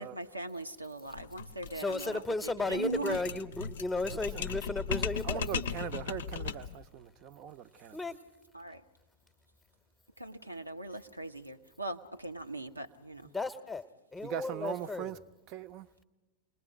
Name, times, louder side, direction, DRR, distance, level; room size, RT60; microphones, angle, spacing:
voice 1, 0.0-3.3 8.5-8.8 10.2-13.3, right 2 dB, 85° right, 0.8 m, -40 dB
sound 1, 1.1-6.8, left 6 dB, 60° left, 0.6 m, -37 dB
voice 2, 1.7-5.4 7.9-8.2 13.3-13.8 14.1-15.1, left 2 dB, 10° left, 0.9 m, -34 dB
voice 3, 4.1-4.5 4.9-8.0 14.2-15.2 15.5-15.9, right 10 dB, 40° right, 0.7 m, -41 dB
28.5 x 20.5 x 5.1 m
figure-of-eight pair, 90°, 0 cm